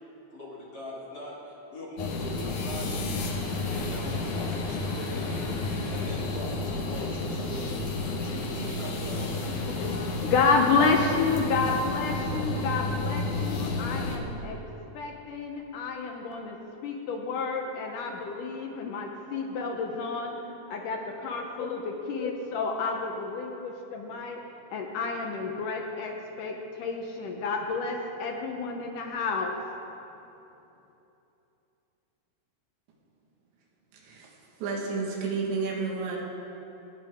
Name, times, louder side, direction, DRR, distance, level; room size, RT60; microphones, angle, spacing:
voice 1, 0.3-1.3 1.7-3.0 3.7-7.7 8.1-9.9, left 2 dB, 30° left, -6 dB, 2.6 m, -41 dB
sound 1, 2.0-14.2, left 2 dB, 60° left, 2.4 m, -31 dB
voice 2, 9.7-14.6 14.9-16.6 16.8-24.4 24.7-29.6, left 4 dB, 75° left, 2 dB, 1.9 m, -30 dB
voice 3, 33.9-34.3 34.6-36.2, right 4 dB, 85° right, -2 dB, 4.0 m, -31 dB
29.0 x 9.8 x 3.7 m, 2.9 s
omnidirectional pair, 4.9 m